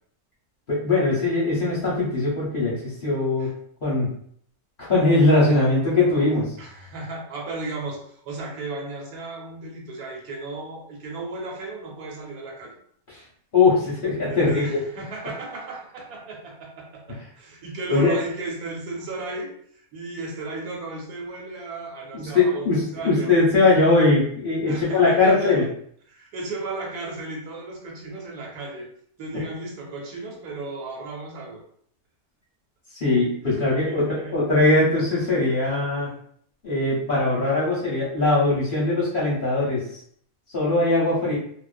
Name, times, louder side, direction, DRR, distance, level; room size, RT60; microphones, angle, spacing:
voice 1, 0.7-3.5 3.8-4.1 4.8-6.5 13.5-14.8 17.1-17.2 17.9-18.1 22.1-25.7 32.9-36.1 36.6-39.8 40.5-41.4, left 3 dB, 50° left, -7 dB, 0.7 m, -21 dB
voice 2, 6.6-12.8 14.3-23.3 24.7-25.7 26.1-28.9 29.2-31.6 33.7-34.4 35.4-35.6 41.2-41.3, right 2 dB, 85° right, 0 dB, 1.2 m, -35 dB
2.4 x 2.2 x 2.4 m, 0.62 s
omnidirectional pair, 1.6 m